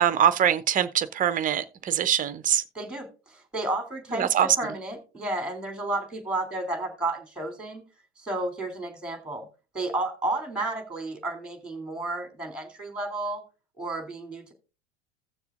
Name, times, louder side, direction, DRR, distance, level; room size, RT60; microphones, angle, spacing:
voice 1, 0.0-2.6 4.2-4.5, right 9 dB, 25° right, 0.7 m, -23 dB
voice 2, 2.7-7.8 8.2-9.5 9.7-13.4 13.8-14.5, right 2 dB, 5° right, 2.9 m, -32 dB
16.0 x 6.9 x 2.5 m
figure-of-eight pair, 80°, 34 cm